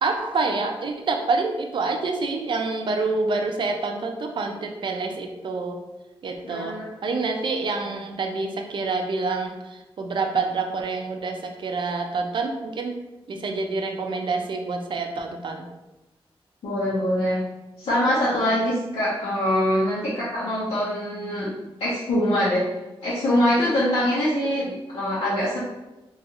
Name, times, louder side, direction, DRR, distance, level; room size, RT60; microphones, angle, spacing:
voice 1, 0.0-5.8 6.2-9.6 10.0-13.0 13.3-15.6, right 3 dB, 55° right, 4 dB, 0.4 m, -27 dB
voice 2, 6.4-6.9 16.6-17.4 17.8-21.5 21.8-22.6 23.0-25.6, left 1 dB, 85° left, -9 dB, 0.7 m, -23 dB
3.0 x 2.4 x 2.8 m, 1.0 s
wide cardioid pair, 145°, 10 cm